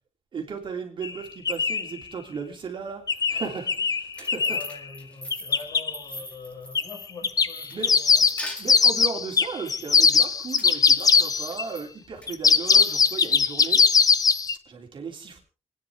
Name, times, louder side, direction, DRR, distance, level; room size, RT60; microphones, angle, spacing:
voice 1, 0.3-4.7 7.7-7.9 8.6-13.8 14.6-15.4, right 5 dB, 50° right, 2 dB, 3.1 m, -36 dB
sound 1, 1.0-1.1 1.4-1.9 3.1-4.7 5.3-5.9 6.7-6.9 7.2-11.6 12.3-14.5, left 5 dB, 35° left, 0.7 m, -20 dB
sound 2, 3.9-7.1 7.5-9.0 10.1-11.9 12.2-12.9, left 1 dB, 10° left, 1.9 m, -41 dB
voice 2, 4.5-8.2, left 4 dB, 50° left, 1 dB, 5.0 m, -44 dB
29.0 x 10.0 x 3.6 m, 0.34 s
wide cardioid pair, 155°, 11 cm